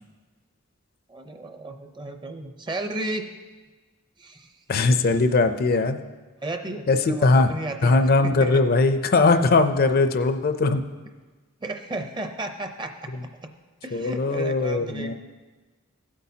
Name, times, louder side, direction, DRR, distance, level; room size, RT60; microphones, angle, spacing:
voice 1, 1.1-3.3 4.2-4.5 6.4-8.6 11.6-13.5 13.8-15.1, right 2 dB, 20° right, 6 dB, 0.6 m, -34 dB
voice 2, 4.7-6.0 6.9-7.5 7.8-10.8 13.9-15.1, left 3 dB, 45° left, 8 dB, 0.5 m, -20 dB
16.0 x 8.4 x 2.8 m, 1.3 s
head